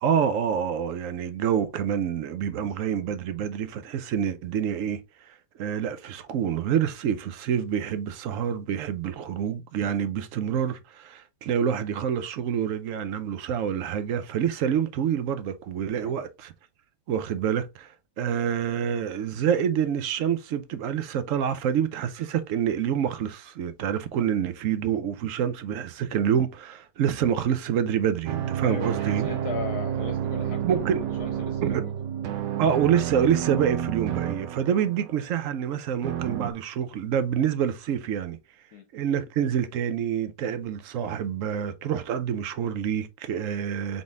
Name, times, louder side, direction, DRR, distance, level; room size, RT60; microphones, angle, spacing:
voice 1, 0.0-16.5 17.1-29.3 30.6-31.1 31.6-31.9 32.6-38.4 38.9-44.0, right 8 dB, 65° right, 0.8 m, -27 dB
sound 1, 28.3-35.3 36.0-36.5, right 9 dB, 85° right, 1.3 m, -30 dB
voice 2, 28.6-30.7 30.9-31.9 38.7-38.9, left 7 dB, 70° left, 1.2 m, -37 dB
4.0 x 3.8 x 3.5 m
omnidirectional pair, 1.8 m